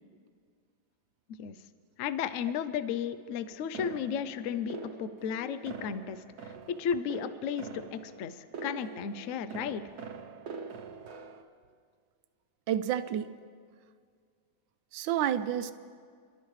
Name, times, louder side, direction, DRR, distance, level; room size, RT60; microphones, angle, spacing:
voice 1, 2.0-9.8, left 8 dB, 75° left, 12 dB, 0.7 m, -34 dB
sound 1, 3.7-11.4, right 5 dB, 60° right, 1.3 m, -44 dB
voice 2, 12.7-13.4 14.9-15.7, right 10 dB, 80° right, 12 dB, 1.3 m, -30 dB
26.5 x 12.5 x 3.2 m, 2.1 s
omnidirectional pair, 2.0 m